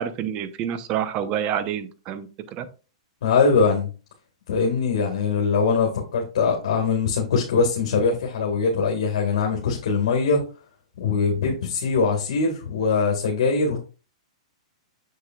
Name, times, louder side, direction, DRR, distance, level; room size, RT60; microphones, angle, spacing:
voice 1, 0.0-2.7, right 9 dB, 35° right, 12 dB, 0.8 m, -28 dB
voice 2, 3.2-3.9 4.5-10.4 11.0-13.8, left 4 dB, 70° left, 0 dB, 1.8 m, -22 dB
6.7 x 6.5 x 2.3 m, 0.34 s
hypercardioid pair, 135°, 3 cm